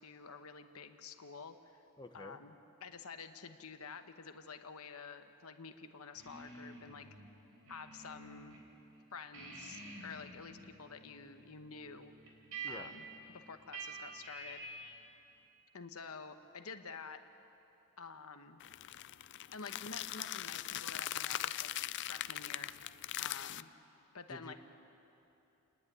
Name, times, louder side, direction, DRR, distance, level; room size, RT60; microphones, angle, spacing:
voice 1, 0.0-1.8 2.1-2.5 2.8-7.1 7.7-8.6 9.1-12.1 12.7-14.6 15.7-17.2 18.0-18.6 19.5-21.7 22.1-22.7 23.2-23.7 24.1-24.5, left 5 dB, 70° left, 8 dB, 1.0 m, -49 dB
voice 2, 2.0-2.4 12.6-12.9 24.3-24.5, left 2 dB, 20° left, 5 dB, 0.9 m, -49 dB
sound 1, 6.1-8.6 8.9-15.1, right 3 dB, 75° right, 4.2 m, -49 dB
sound 2, 18.6-23.6, left 13 dB, 55° left, 0.4 m, -40 dB
30.0 x 10.0 x 9.8 m, 2.9 s
head